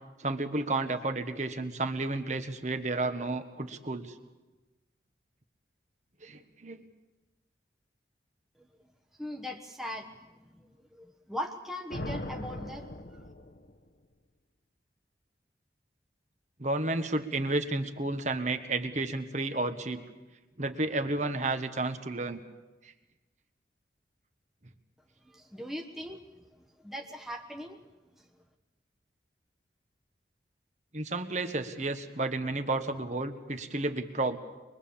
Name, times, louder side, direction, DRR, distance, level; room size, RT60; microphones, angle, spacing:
voice 1, 0.2-4.1 6.2-6.8 16.6-20.0 20.6-22.4 30.9-34.4, right 2 dB, 40° right, 8 dB, 1.5 m, -31 dB
voice 2, 9.2-13.2 25.2-26.2 26.5-27.8 28.1-28.2, left 1 dB, ahead, 1 dB, 1.1 m, -40 dB
sound 1, 11.9-13.9, left 1 dB, 55° left, 1.1 m, -39 dB
23.5 x 22.5 x 7.2 m, 1.1 s
head